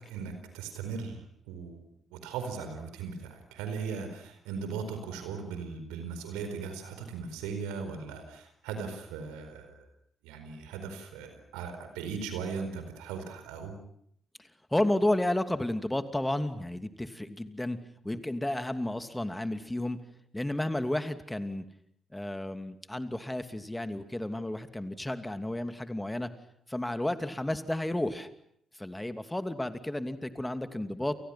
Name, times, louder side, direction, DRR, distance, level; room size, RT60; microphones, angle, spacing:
voice 1, 0.0-1.8 2.1-9.9 10.2-13.8, right 5 dB, 70° right, 7 dB, 4.5 m, -38 dB
voice 2, 14.7-17.8 18.0-20.0 20.3-21.6 22.1-26.3 26.7-28.3 28.8-31.2, left 1 dB, 10° left, 9 dB, 2.8 m, -32 dB
30.0 x 29.0 x 6.0 m, 0.69 s
figure-of-eight pair, 40°, 0 cm